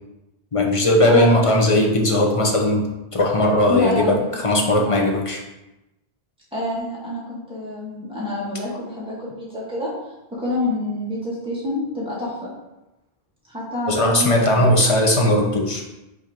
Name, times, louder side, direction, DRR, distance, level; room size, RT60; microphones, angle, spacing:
voice 1, 0.5-2.9 3.1-5.4 13.9-15.8, left 1 dB, 35° left, 0 dB, 1.0 m, -18 dB
voice 2, 1.1-1.5 3.7-5.0 6.5-9.9 10.3-12.5 13.5-14.7, left 1 dB, 5° right, -8 dB, 2.0 m, -27 dB
6.2 x 3.7 x 5.0 m, 0.97 s
omnidirectional pair, 1.1 m